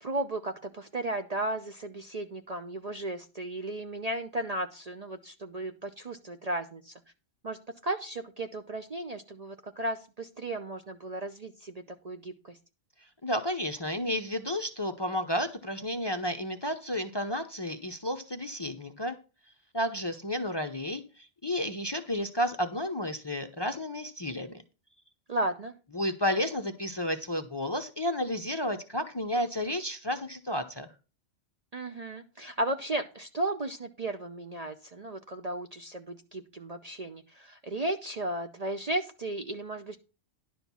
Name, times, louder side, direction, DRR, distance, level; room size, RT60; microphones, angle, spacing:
voice 1, 0.0-6.9 7.4-12.6 25.3-25.7 31.7-40.0, right 1 dB, 40° right, 6 dB, 0.6 m, -35 dB
voice 2, 13.2-19.2 19.7-24.6 25.9-30.9, left 1 dB, 25° left, 7 dB, 0.6 m, -32 dB
11.0 x 4.5 x 6.8 m, 0.32 s
omnidirectional pair, 1.2 m